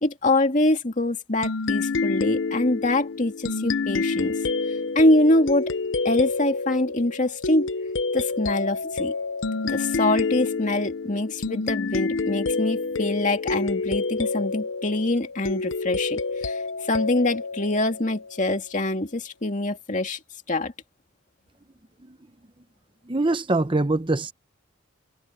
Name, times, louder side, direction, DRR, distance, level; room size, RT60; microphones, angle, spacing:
voice 1, 0.0-4.4 4.9-5.7 6.0-7.7 8.1-9.1 9.6-20.2 20.5-20.7, left 2 dB, 40° left, 2.4 m, -24 dB
sound 1, 1.4-18.6, left 4 dB, 80° left, 0.7 m, -28 dB
voice 2, 23.1-24.3, right 2 dB, 25° right, 0.9 m, -23 dB
head